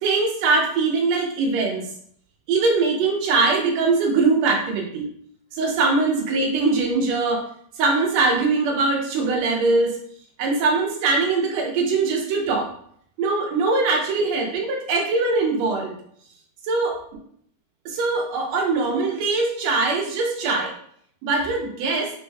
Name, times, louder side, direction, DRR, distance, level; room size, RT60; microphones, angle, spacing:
voice 1, 0.0-1.8 2.5-5.1 5.5-7.4 7.8-10.0 10.4-12.7 13.2-15.9 16.6-17.0 17.9-20.7 21.2-22.1, right 3 dB, 70° right, 1 dB, 1.9 m, -22 dB
5.3 x 3.0 x 2.2 m, 0.64 s
omnidirectional pair, 3.4 m